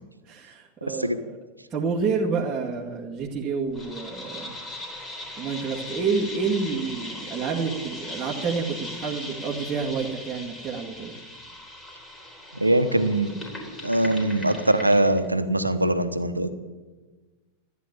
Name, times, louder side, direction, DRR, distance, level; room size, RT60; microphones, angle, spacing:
voice 1, 0.3-1.4 1.7-4.5 5.4-11.1, right 5 dB, 20° right, -5 dB, 2.0 m, -29 dB
voice 2, 0.9-1.2 12.5-13.3 13.8-16.5, right 1 dB, 85° right, 11 dB, 1.0 m, -22 dB
sound 1, 3.7-15.2, left 1 dB, 15° left, 3.7 m, -39 dB
14.5 x 9.6 x 8.9 m, 1.3 s
figure-of-eight pair, 90°, 0 cm